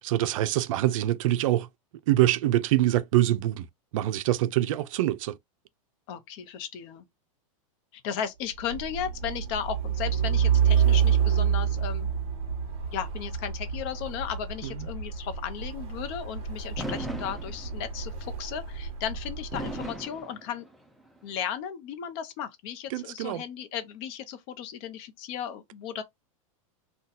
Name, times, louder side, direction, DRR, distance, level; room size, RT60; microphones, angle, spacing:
voice 1, 0.0-1.7 2.1-3.7 3.9-5.4 22.9-23.4, right 14 dB, 65° right, 0.5 m, -24 dB
voice 2, 6.1-7.0 7.9-12.1 12.9-20.7 21.2-26.0, left 9 dB, 45° left, 0.7 m, -35 dB
Truck, 8.5-19.9, right 8 dB, 35° right, 1.0 m, -28 dB
Fireworks, 16.8-18.1 19.5-21.1, right 1 dB, ahead, 0.3 m, -37 dB
2.6 x 2.3 x 3.9 m
supercardioid pair, 145°, 18 cm